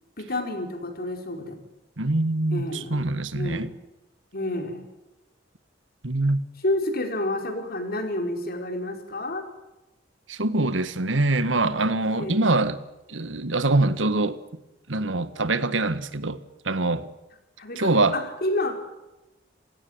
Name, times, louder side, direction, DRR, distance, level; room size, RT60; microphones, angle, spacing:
voice 1, 0.2-1.6 2.5-3.1 3.3-3.8 4.3-4.9 6.6-9.4 12.1-12.5 17.6-18.8, left 1 dB, 55° left, 5.1 m, -29 dB
voice 2, 2.0-3.7 6.0-6.4 10.3-12.8 13.1-14.4 14.9-17.1 17.7-18.2, right 2 dB, 90° right, 1.6 m, -24 dB
29.0 x 17.5 x 9.6 m
head